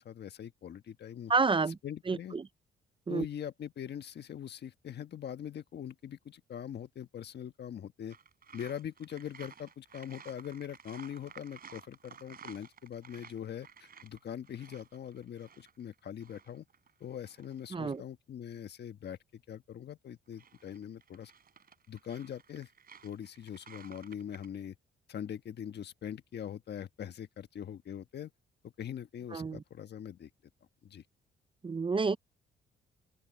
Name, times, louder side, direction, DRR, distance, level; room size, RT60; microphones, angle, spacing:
voice 1, 0.0-1.3 1.8-2.4 3.1-8.2 8.5-16.7 17.0-21.3 21.9-22.7 23.0-24.7 25.1-28.3 28.6-30.3 30.8-31.0, left 9 dB, 55° left, 1.4 m, -42 dB
voice 2, 1.3-1.8 2.1-2.5 3.1-3.3 17.7-18.0 29.3-29.6 31.6-32.2, right 4 dB, 25° right, 0.7 m, -29 dB
sound 1, 8.1-18.0 20.1-24.5, right 7 dB, 50° right, 5.2 m, -55 dB
open air
cardioid pair, 90°, 20 cm